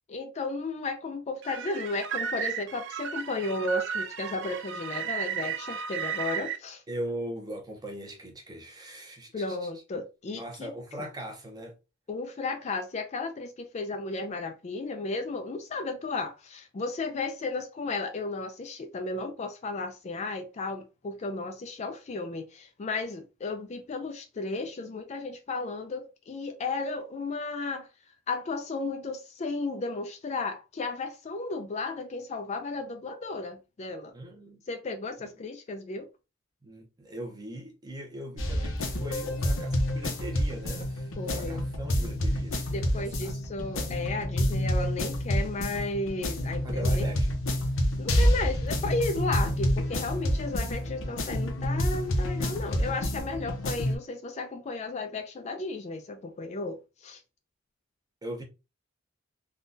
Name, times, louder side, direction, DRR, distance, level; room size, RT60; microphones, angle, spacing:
voice 1, 0.1-6.8 9.3-10.7 11.0-11.1 12.1-27.9 28.3-34.1 34.7-36.1 41.2-41.7 42.7-47.1 48.0-57.2, left 3 dB, 30° left, 0.3 m, -34 dB
sound 1, 1.4-6.6, right 7 dB, 60° right, 0.4 m, -34 dB
voice 2, 6.9-9.6 10.3-11.7 34.1-34.6 36.6-43.1 46.6-47.3 58.2-58.4, right 1 dB, 20° right, 0.7 m, -40 dB
sound 2, 38.4-54.0, equal, 65° left, 0.7 m, -28 dB
3.6 x 2.3 x 2.6 m
head